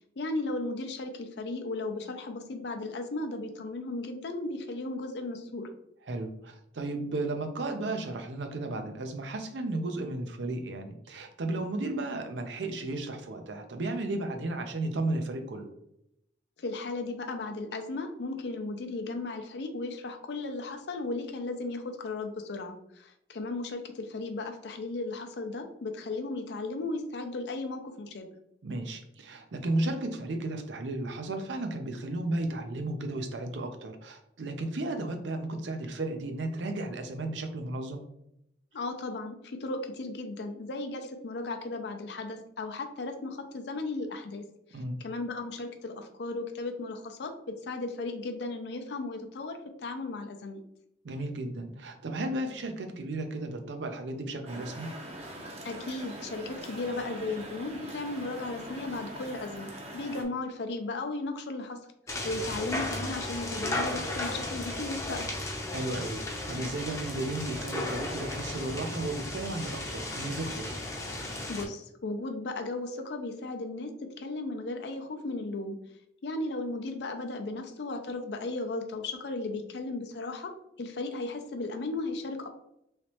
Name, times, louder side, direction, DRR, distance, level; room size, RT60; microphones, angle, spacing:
voice 1, 0.2-5.7 16.6-28.3 38.7-44.4 44.7-50.6 55.6-61.8 62.2-65.3 71.5-75.8 76.2-82.5, left 2 dB, 65° left, 5 dB, 0.5 m, -35 dB
voice 2, 6.1-15.7 28.6-38.0 44.7-45.0 51.0-54.9 65.7-70.8, right 2 dB, 80° right, 6 dB, 0.5 m, -34 dB
sound 1, 54.5-60.2, right 1 dB, 35° right, 0.6 m, -43 dB
sound 2, 62.1-71.6, left 1 dB, 15° left, 0.6 m, -35 dB
3.2 x 3.0 x 2.8 m, 0.80 s
head